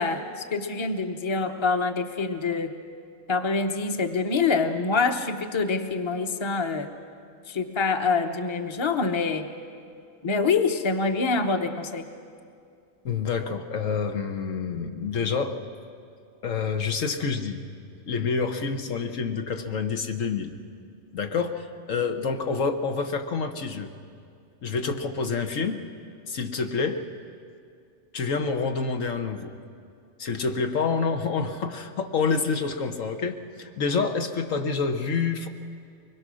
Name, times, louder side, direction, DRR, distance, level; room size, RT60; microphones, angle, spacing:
voice 1, 0.0-2.7 3.3-6.9 7.5-9.5 10.2-12.0, left 4 dB, 25° left, 7 dB, 0.9 m, -25 dB
voice 2, 13.0-15.5 16.4-17.7 18.1-20.5 21.1-23.9 24.6-25.8 26.3-27.0 28.1-29.5 30.2-35.5, left 5 dB, 85° left, 5 dB, 1.5 m, -27 dB
24.0 x 21.0 x 6.3 m, 2.4 s
omnidirectional pair, 1.3 m